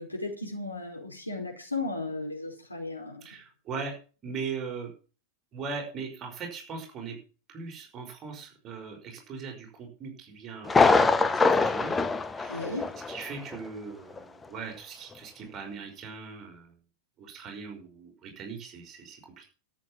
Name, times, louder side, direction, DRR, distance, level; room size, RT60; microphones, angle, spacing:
voice 1, 0.0-3.2 12.5-12.9, left 2 dB, 85° left, 0 dB, 4.7 m, -35 dB
voice 2, 3.2-4.0 4.2-4.9 5.5-7.2 7.5-12.1 12.3-12.8 13.1-16.7 17.2-19.4, right 5 dB, 30° right, 2 dB, 5.4 m, -40 dB
Thunder, 10.7-13.2 13.5-13.6 14.2-14.3, left 4 dB, 15° left, 0.9 m, -23 dB
13.5 x 7.8 x 7.2 m, 0.37 s
figure-of-eight pair, 90°, 0 cm